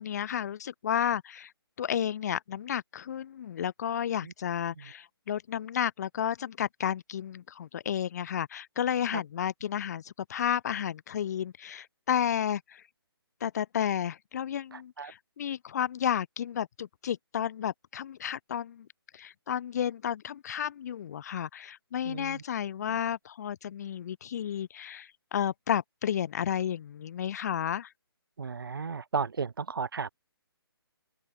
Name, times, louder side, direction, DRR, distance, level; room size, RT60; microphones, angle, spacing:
voice 1, 0.0-1.5 1.8-12.8 13.4-18.9 19.1-27.9, left 9 dB, 40° left, 2.8 m, -32 dB
voice 2, 28.4-30.1, right 5 dB, 60° right, 3.6 m, -33 dB
open air
figure-of-eight pair, 140°, 13 cm